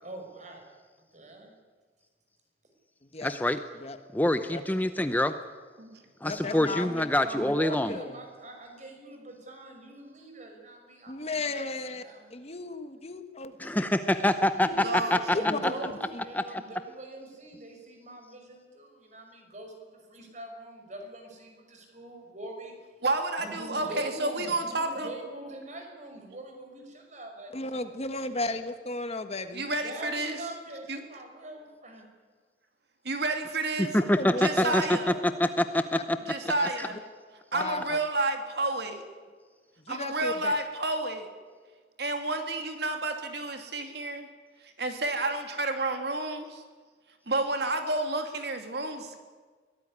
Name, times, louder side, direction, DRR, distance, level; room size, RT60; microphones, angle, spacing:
voice 1, 0.0-0.7 1.1-1.5 6.4-11.7 12.0-12.3 15.3-22.8 23.4-28.6 29.8-32.1 37.6-37.8, right 1 dB, 40° right, 3 dB, 5.8 m, -43 dB
voice 2, 3.2-3.6 4.1-5.3 6.2-7.9 13.6-14.9 15.1-15.4 16.3-16.4 33.9-34.8 35.4-36.2 36.8-36.9, left 1 dB, 10° left, 9 dB, 0.7 m, -25 dB
voice 3, 6.2-6.9 7.9-8.1 11.1-12.0 12.3-13.8 14.6-14.8 15.3-15.7 16.1-16.2 27.5-29.7 34.2-34.8 36.5-36.7 37.5-38.0 39.9-40.5, left 2 dB, 35° left, 9 dB, 1.4 m, -34 dB
voice 4, 14.8-15.2 23.0-25.1 29.5-30.4 30.9-31.0 33.0-34.0 34.4-35.2 36.3-37.0 37.5-39.0 39.9-41.3 42.0-44.3 44.6-46.6 47.3-49.2, right 2 dB, 65° right, 6 dB, 2.8 m, -30 dB
23.0 x 17.5 x 9.8 m, 1.5 s
head